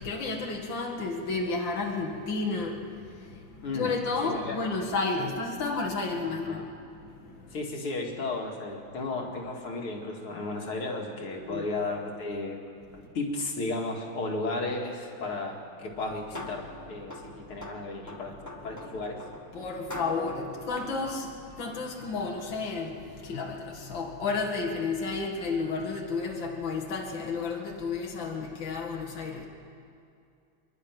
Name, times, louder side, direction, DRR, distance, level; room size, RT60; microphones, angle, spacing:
voice 1, 0.0-7.6 11.4-11.6 19.5-29.5, left 4 dB, 60° left, 0 dB, 2.5 m, -32 dB
voice 2, 3.6-3.9 4.2-4.6 5.2-5.3 6.2-6.7 7.5-12.6 13.0-19.2, left 2 dB, 80° left, 0 dB, 3.0 m, -34 dB
sound 1, 15.9-21.8, left 1 dB, 10° left, 1.5 m, -44 dB
26.5 x 11.5 x 9.3 m, 2.5 s
omnidirectional pair, 2.4 m